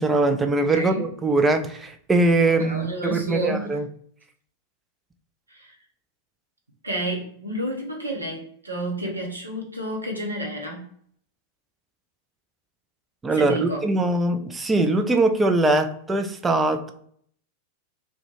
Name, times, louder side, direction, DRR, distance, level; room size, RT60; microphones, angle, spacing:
voice 1, 0.0-3.8 13.2-16.9, right 2 dB, 15° right, 7 dB, 0.3 m, -22 dB
voice 2, 0.7-1.0 2.4-3.8 5.5-5.8 6.8-10.9 13.3-14.1, right 1 dB, 80° right, 0 dB, 0.7 m, -30 dB
2.3 x 2.2 x 2.9 m, 0.63 s
figure-of-eight pair, 90°, 0 cm